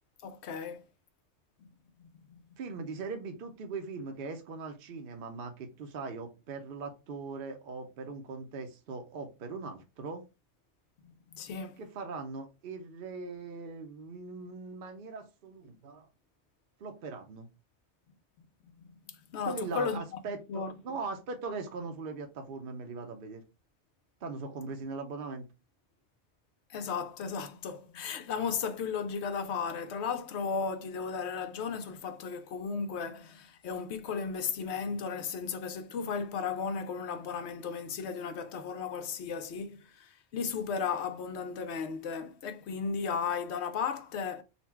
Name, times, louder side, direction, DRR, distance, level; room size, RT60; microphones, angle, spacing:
voice 1, 0.2-0.8 1.6-1.7 11.0-11.8 19.3-20.0 20.5-21.0 26.7-44.4, left 6 dB, 75° left, 0.9 m, -35 dB
voice 2, 2.6-10.2 11.8-16.1 16.8-17.5 19.5-23.4 24.2-25.4, right 4 dB, 60° right, 0.8 m, -40 dB
4.1 x 2.2 x 4.3 m
omnidirectional pair, 1.1 m